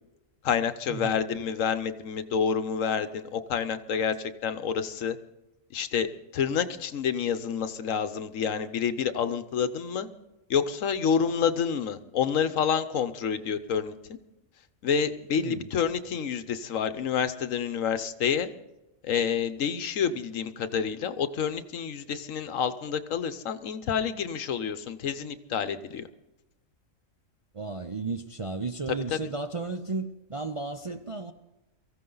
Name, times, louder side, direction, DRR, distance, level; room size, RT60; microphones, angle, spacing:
voice 1, 0.4-5.2 5.7-10.1 10.5-14.2 14.8-18.5 19.0-26.1 29.1-29.2, left 7 dB, 75° left, 1.2 m, -28 dB
voice 2, 15.4-15.7 27.5-31.3, right 3 dB, 40° right, 0.5 m, -34 dB
23.5 x 15.0 x 3.9 m
omnidirectional pair, 1.4 m